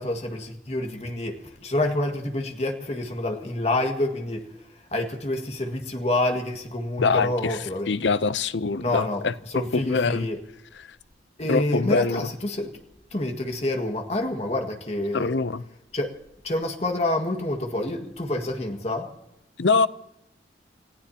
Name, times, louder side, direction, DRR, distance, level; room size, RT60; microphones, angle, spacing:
voice 1, 0.0-4.4 4.9-7.9 8.8-9.3 9.5-10.4 11.4-12.7 13.1-15.4 15.9-16.1 16.4-19.1, left 1 dB, 35° left, 1.9 m, -27 dB
voice 2, 7.0-10.3 10.8-10.9 11.5-12.3 15.1-15.6 19.6-19.9, left 4 dB, 80° left, 0.6 m, -24 dB
29.5 x 16.0 x 2.9 m
head